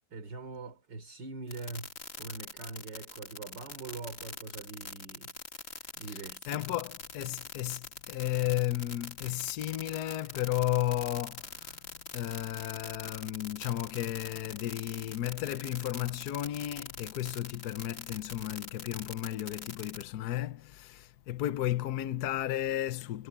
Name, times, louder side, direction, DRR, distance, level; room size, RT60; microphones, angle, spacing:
voice 1, 0.0-5.4 6.0-6.7, right 3 dB, 70° right, 3.9 m, -43 dB
sound 1, 1.5-20.0, left 3 dB, 35° left, 2.5 m, -43 dB
voice 2, 6.5-11.8 12.1-23.3, left 13 dB, 65° left, 1.2 m, -33 dB
omnidirectional pair, 2.0 m